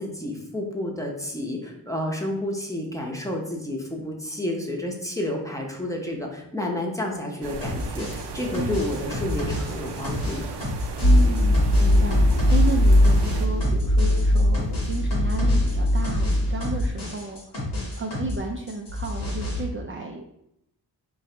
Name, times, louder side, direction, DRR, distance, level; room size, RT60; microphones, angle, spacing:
voice 1, 0.0-10.6, left 1 dB, 10° left, 0 dB, 0.7 m, -30 dB
sound 1, 7.4-13.5, right 4 dB, 90° right, 0.5 m, -36 dB
sound 2, 7.6-18.4 18.7-19.6, left 1 dB, 80° left, 1.5 m, -31 dB
voice 2, 8.6-8.9 11.0-17.4 18.0-20.3, right 3 dB, 35° right, 1 dB, 0.4 m, -33 dB
sound 3, 11.0-16.9, left 1 dB, 45° left, 0.6 m, -20 dB
3.8 x 2.6 x 4.3 m, 0.79 s
wide cardioid pair, 100°, 40 cm